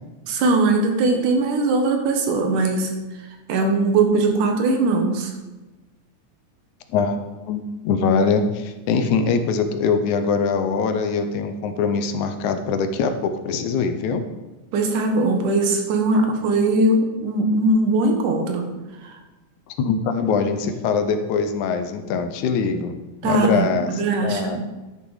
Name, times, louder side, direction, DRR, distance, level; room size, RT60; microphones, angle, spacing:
voice 1, 0.3-2.9 3.5-5.3 14.7-18.7 19.0-19.2 23.2-24.7, right 2 dB, 80° right, 4 dB, 2.8 m, -20 dB
voice 2, 6.9-14.2 19.7-22.9 23.2-24.6, left 5 dB, 80° left, 8 dB, 2.1 m, -23 dB
11.0 x 6.8 x 4.9 m, 1.1 s
omnidirectional pair, 3.6 m